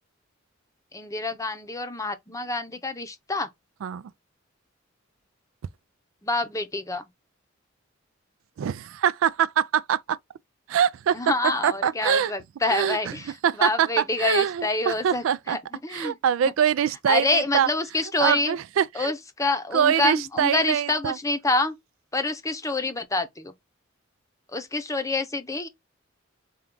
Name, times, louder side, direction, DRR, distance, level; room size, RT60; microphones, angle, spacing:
voice 1, 0.9-3.5 6.2-7.0 11.1-13.3 13.6-16.2 17.1-18.5 18.9-21.7 22.1-23.5 24.5-25.7, left 2 dB, 15° left, 0.6 m, -27 dB
voice 2, 8.6-10.2 10.7-11.2 11.6-12.3 12.7-13.2 13.4-15.6 15.9-17.7 18.2-19.1 19.7-21.2, right 8 dB, 85° right, 0.3 m, -24 dB
4.4 x 2.3 x 3.7 m
head